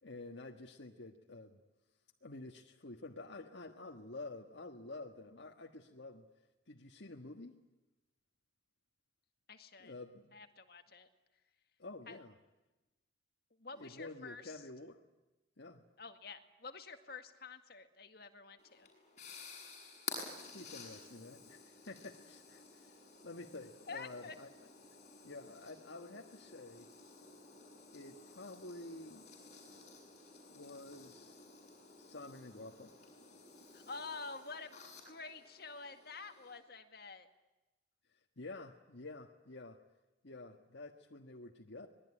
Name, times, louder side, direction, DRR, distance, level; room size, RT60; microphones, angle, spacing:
voice 1, 0.0-1.6 2.2-6.3 6.7-7.6 9.8-10.4 11.8-12.3 13.8-15.0 15.6-15.8 20.5-24.5 25.2-26.9 27.9-29.3 30.5-31.4 32.0-33.1 38.1-39.8 40.2-41.9, left 2 dB, 70° left, 2 dB, 1.6 m, -50 dB
voice 2, 9.5-9.9 10.3-11.1 12.1-12.2 13.6-14.6 16.0-18.9 23.9-24.4 33.7-37.3, left 4 dB, 55° left, 7 dB, 2.1 m, -49 dB
sound 1, 18.6-36.6, left 4 dB, 40° left, 7.8 m, -53 dB
25.5 x 20.5 x 9.9 m, 1.1 s
head